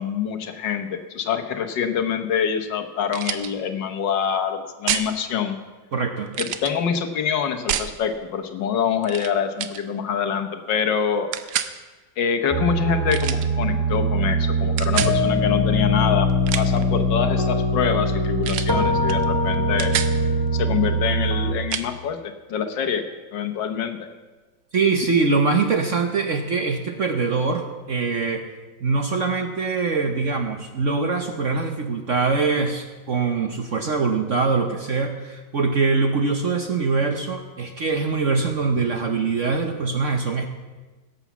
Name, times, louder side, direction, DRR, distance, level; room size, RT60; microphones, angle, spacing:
voice 1, 0.0-5.6 6.4-11.3 12.2-16.3 16.5-19.9 20.5-23.1 23.3-24.0, left 7 dB, 70° left, 7 dB, 1.6 m, -25 dB
sound 1, 3.1-3.5 4.9-5.1 6.3-6.7 7.7-7.9 9.0-9.3 9.6-9.8 11.3-11.7 13.1-13.5 14.8-15.2 16.3-16.8 18.4-18.7 19.1-19.2 19.5-20.1 21.7-21.9, right 10 dB, 70° right, 1.3 m, -27 dB
voice 2, 5.9-6.3 24.7-28.4 28.8-40.5, right 4 dB, 50° right, 5 dB, 1.0 m, -23 dB
sound 2, 12.5-21.5, equal, 15° right, 1.1 m, -22 dB
17.0 x 7.2 x 7.1 m, 1.3 s
omnidirectional pair, 2.1 m